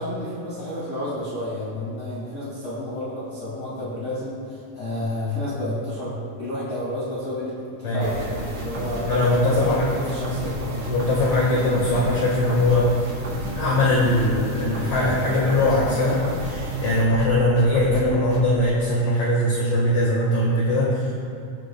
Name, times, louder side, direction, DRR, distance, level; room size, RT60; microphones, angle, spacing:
voice 1, 0.0-9.1 9.4-10.9, left 1 dB, 30° left, -10 dB, 2.6 m, -31 dB
sound 1, 8.0-18.5, right 1 dB, 60° right, 3.3 m, -32 dB
voice 2, 9.1-9.9 10.9-12.9 13.6-21.1, left 1 dB, 55° left, -6 dB, 2.6 m, -21 dB
21.0 x 7.8 x 2.4 m, 2.3 s
omnidirectional pair, 3.6 m